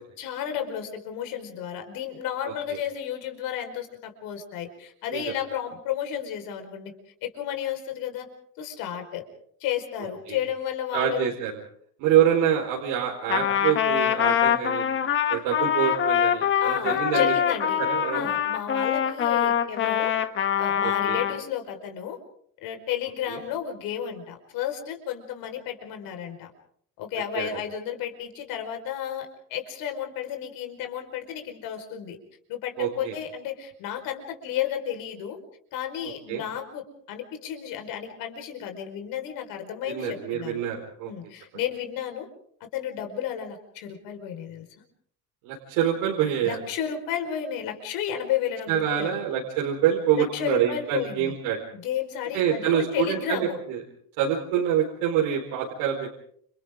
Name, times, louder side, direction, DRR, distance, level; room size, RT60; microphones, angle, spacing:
voice 1, 0.2-6.9 7.2-8.3 8.6-9.2 9.6-11.3 16.6-17.8 18.1-20.1 20.6-22.2 22.6-26.5 27.0-32.2 32.5-35.4 35.7-40.6 41.0-42.3 42.6-44.6 46.4-49.2 50.1-51.3 51.7-53.6, left 10 dB, 60° left, 5 dB, 5.0 m, -32 dB
voice 2, 2.4-2.8 5.1-5.2 10.3-10.4 10.9-11.5 12.0-14.9 15.3-17.3 17.8-18.3 20.8-21.2 23.3-23.4 27.3-27.5 32.8-33.1 36.3-36.4 39.9-41.1 45.4-46.6 48.7-51.6 52.3-53.8 54.2-56.2, right 9 dB, 75° right, -2 dB, 4.6 m, -26 dB
Trumpet, 13.3-21.4, left 9 dB, 30° left, 1.4 m, -24 dB
30.0 x 28.0 x 3.8 m, 0.64 s
cardioid pair, 165°, 39 cm